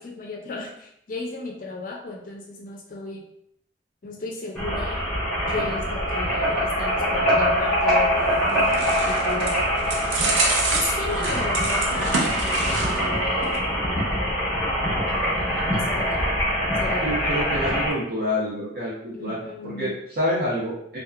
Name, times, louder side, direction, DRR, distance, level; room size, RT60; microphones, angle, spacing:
voice 1, 0.0-3.2 4.0-5.1 5.5-9.6 10.7-14.7 15.1-16.3 16.8-17.9 19.1-20.0, left 2 dB, 45° left, 0 dB, 0.4 m, -35 dB
sound 1, 4.6-17.9, equal, 5° left, 0.9 m, -24 dB
sound 2, 8.2-13.2 13.4-13.6, right 3 dB, 85° right, 0.5 m, -28 dB
voice 2, 17.0-19.4 19.6-21.0, equal, 50° right, -9 dB, 0.7 m, -27 dB
2.7 x 2.3 x 2.3 m, 0.73 s
head